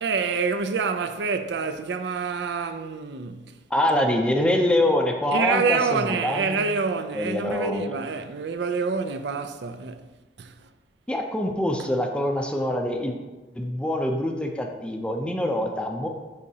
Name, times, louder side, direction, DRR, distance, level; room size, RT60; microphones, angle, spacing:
voice 1, 0.0-3.6 3.9-4.0 5.3-10.1 10.4-10.7, right 5 dB, 70° right, 0.5 m, -27 dB
voice 2, 3.7-6.6 7.1-7.9 11.1-13.2 13.5-16.1, left 1 dB, 5° left, 0.5 m, -25 dB
9.9 x 4.1 x 2.8 m
head